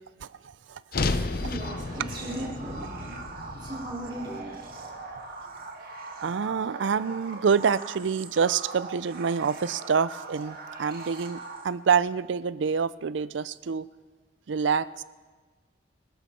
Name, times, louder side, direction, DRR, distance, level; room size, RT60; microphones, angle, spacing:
voice 1, 0.2-1.6 2.0-2.1 6.2-13.9 14.5-15.0, right 6 dB, 70° right, 17 dB, 0.5 m, -27 dB
sound 1, 0.9-5.2, left 3 dB, 55° left, 0.8 m, -33 dB
voice 2, 1.4-3.2 3.6-4.6, right 1 dB, 25° right, -2 dB, 3.1 m, -37 dB
sound 2, 1.6-12.0, right 4 dB, 55° right, 2.1 m, -41 dB
26.5 x 12.5 x 4.3 m, 1.4 s
head